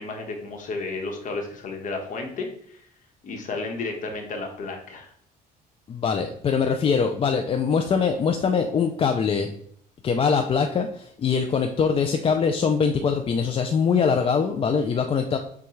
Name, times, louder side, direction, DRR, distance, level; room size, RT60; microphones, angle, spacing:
voice 1, 0.0-2.8 3.2-5.1, left 3 dB, 50° left, 3 dB, 1.1 m, -32 dB
voice 2, 5.9-9.5 10.0-15.4, left 6 dB, 35° left, 5 dB, 0.4 m, -23 dB
6.9 x 2.3 x 3.2 m, 0.64 s
cardioid pair, 110°, 17 cm